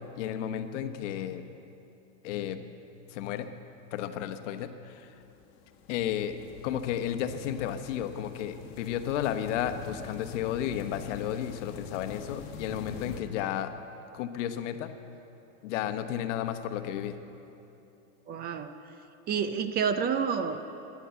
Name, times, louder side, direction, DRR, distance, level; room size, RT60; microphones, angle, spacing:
voice 1, 0.0-1.5 2.2-2.6 3.1-3.5 3.9-5.1 5.9-6.4 6.6-13.7 14.1-14.9 15.6-17.2, left 10 dB, 70° left, 9 dB, 1.1 m, -33 dB
sound 1, 5.0-13.2, left 6 dB, 45° left, 1.7 m, -46 dB
voice 2, 18.3-18.8 19.3-20.6, right 6 dB, 25° right, 9 dB, 0.5 m, -29 dB
14.5 x 11.0 x 8.1 m, 2.9 s
supercardioid pair, 145°, 38 cm